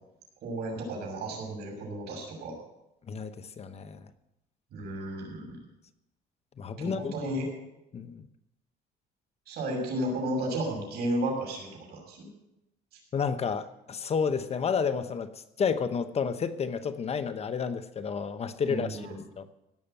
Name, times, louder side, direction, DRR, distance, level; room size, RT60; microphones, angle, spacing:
voice 1, 0.4-2.5 4.7-5.6 6.8-7.5 9.5-12.3 18.6-19.2, right 1 dB, 70° right, 0 dB, 6.5 m, -33 dB
voice 2, 3.1-4.1 6.6-7.1 7.9-8.3 13.1-15.3 15.6-19.1 19.4-19.5, left 6 dB, 40° left, 11 dB, 1.0 m, -31 dB
17.0 x 6.7 x 9.1 m, 0.89 s
cardioid pair, 110°, 17 cm